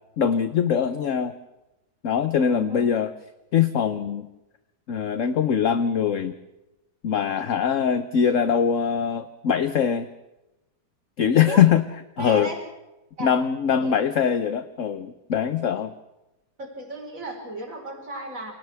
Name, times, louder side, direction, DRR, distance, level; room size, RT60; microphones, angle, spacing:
voice 1, 0.2-1.3 2.0-3.1 3.5-4.3 4.9-6.4 7.0-10.1 11.2-11.9 12.2-12.5 13.2-15.9, left 8 dB, 55° left, 10 dB, 1.2 m, -22 dB
voice 2, 2.5-2.8 11.5-11.6 12.2-12.6 13.2-13.3 13.8-14.0 16.6-18.5, right 2 dB, 50° right, 1 dB, 4.9 m, -35 dB
29.5 x 28.0 x 3.5 m, 0.97 s
omnidirectional pair, 1.8 m